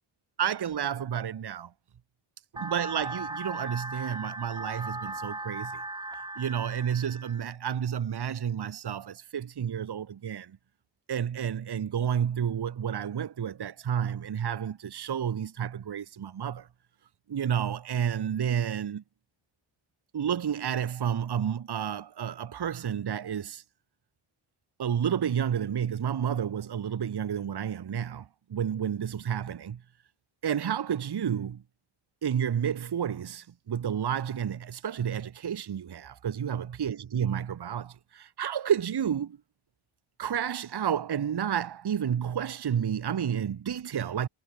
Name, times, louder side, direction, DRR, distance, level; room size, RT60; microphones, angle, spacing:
voice 1, 0.4-1.7 2.5-5.8 6.1-10.6 11.1-16.7 17.3-19.0 20.1-23.6 24.8-29.8 30.4-31.6 32.2-39.4 40.2-44.3, right 8 dB, 50° right, 1.2 m, -30 dB
sound 1, 2.6-7.6, right 2 dB, 10° right, 0.5 m, -38 dB
wide cardioid pair, 170°, 49 cm